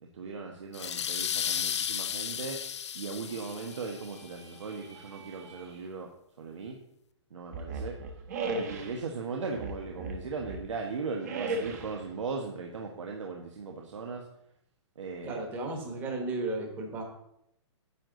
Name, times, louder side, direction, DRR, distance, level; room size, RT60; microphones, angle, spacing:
voice 1, 0.0-2.6 2.9-6.1 6.4-6.8 7.3-7.9 8.5-14.2 15.0-15.4, right 4 dB, 90° right, 1 dB, 1.5 m, -38 dB
sound 1, 0.7-4.2, left 9 dB, 70° left, 0.6 m, -34 dB
sound 2, 3.0-5.9, right 4 dB, 65° right, 3.6 m, -54 dB
sound 3, 7.5-9.0 9.5-10.7 11.2-12.0, right 3 dB, 35° right, 1.1 m, -35 dB
voice 2, 15.2-17.0, right 2 dB, 10° right, 3 dB, 1.2 m, -34 dB
10.0 x 8.1 x 4.0 m, 0.77 s
hypercardioid pair, 175°, 15 cm